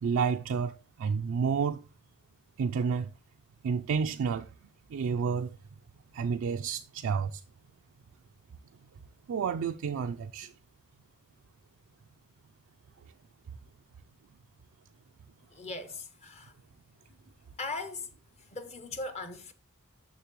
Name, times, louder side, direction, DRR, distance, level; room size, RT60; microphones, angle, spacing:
voice 1, 0.0-1.8 2.6-3.1 3.6-4.5 4.9-5.6 6.1-7.4 9.3-10.5, right 6 dB, 65° right, 0.3 m, -30 dB
voice 2, 15.5-16.5 17.6-18.1 18.4-19.5, left 3 dB, 30° left, 0.6 m, -39 dB
6.6 x 6.6 x 3.0 m
head